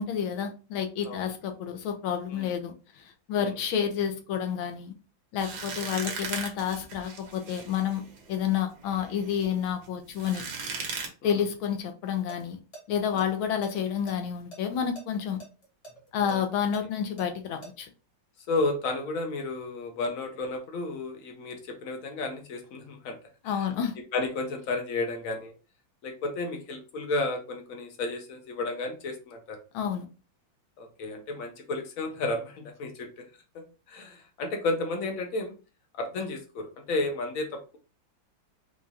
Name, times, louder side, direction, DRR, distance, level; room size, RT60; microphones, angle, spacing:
voice 1, 0.0-4.9 5.3-8.0 8.3-10.4 11.2-12.6 12.9-15.4 16.1-17.9 23.4-24.0 29.7-30.1, left 8 dB, 90° left, 1.5 m, -29 dB
sound 1, 5.4-11.1, right 5 dB, 65° right, 1.4 m, -38 dB
sound 2, 12.3-12.4 12.7-12.8 13.2-14.6 14.9-15.0 15.4-17.7, right 2 dB, 30° left, 0.6 m, -46 dB
voice 2, 18.5-23.2 23.5-23.7 24.1-25.5 26.0-29.6 30.8-33.2 33.5-35.5 35.9-37.8, left 2 dB, 70° left, 0.8 m, -32 dB
4.7 x 2.3 x 2.7 m
omnidirectional pair, 2.2 m